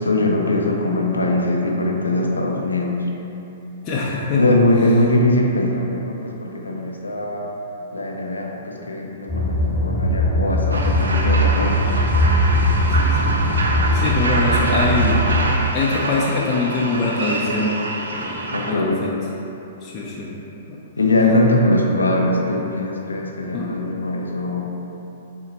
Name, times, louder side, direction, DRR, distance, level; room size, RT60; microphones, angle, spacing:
voice 1, 0.0-3.0 4.3-7.5 7.9-11.8 18.5-19.1 21.0-24.6, left 1 dB, 90° left, 0 dB, 0.4 m, -21 dB
voice 2, 3.8-4.4 13.0-13.4 13.9-15.2 15.7-17.8 18.1-19.1 19.8-20.3 20.7-20.8 23.5-23.7, left 3 dB, 35° left, -5 dB, 0.4 m, -23 dB
sound 1, 9.3-15.5, equal, 5° left, 1.0 m, -19 dB
sound 2, 10.7-18.7, right 2 dB, 80° right, 0.4 m, -26 dB
4.1 x 2.1 x 4.1 m, 3.0 s
hypercardioid pair, 115°, 0 cm